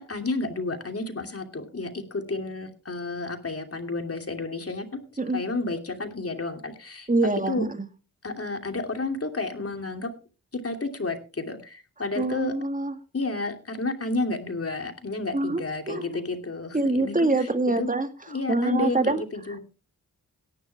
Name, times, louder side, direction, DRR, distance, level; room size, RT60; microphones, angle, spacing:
voice 1, 0.0-5.0 5.3-7.1 7.5-7.7 8.2-10.1 10.5-12.5 13.1-17.5 17.8-17.9 18.3-19.6, left 3 dB, 45° left, 5 dB, 2.9 m, -31 dB
voice 2, 7.1-7.9 12.2-13.0 15.3-15.6 15.9-16.0 16.7-18.1 18.5-19.2, right 2 dB, 25° right, 8 dB, 2.0 m, -24 dB
18.0 x 10.5 x 3.5 m, 0.34 s
cardioid pair, 70°, 34 cm